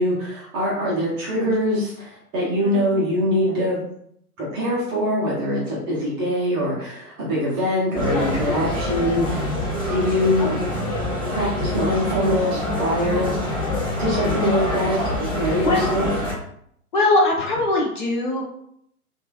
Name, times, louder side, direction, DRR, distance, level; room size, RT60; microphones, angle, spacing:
voice 1, 0.0-3.8 4.4-9.4 9.9-10.6 11.3-13.3 14.0-16.1, equal, 15° right, -6 dB, 0.5 m, -23 dB
voice 2, 2.6-3.1 10.4-10.5 15.6-15.9 16.9-18.4, left 2 dB, 35° left, -2 dB, 0.5 m, -21 dB
sound 1, 7.9-16.3, left 1 dB, 10° left, 1.0 m, -25 dB
3.0 x 2.3 x 2.2 m, 0.69 s
figure-of-eight pair, 110°, 46 cm